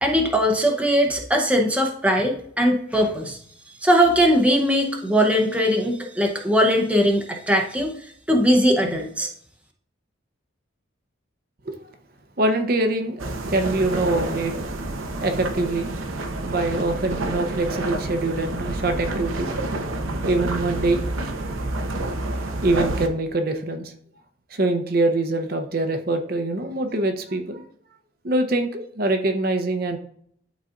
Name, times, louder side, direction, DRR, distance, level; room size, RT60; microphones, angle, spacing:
voice 1, 0.0-3.4 3.8-7.9 8.3-9.3, equal, 5° right, 2 dB, 0.7 m, -20 dB
voice 2, 12.4-14.6 15.0-15.9 16.4-19.5 20.2-21.0 21.4-21.6 22.6-23.9 24.5-27.6 28.2-30.0, right 2 dB, 45° right, 5 dB, 0.7 m, -24 dB
sound 1, 13.2-23.1, right 2 dB, 90° right, 0.9 m, -28 dB
11.5 x 4.0 x 2.5 m, 0.65 s
head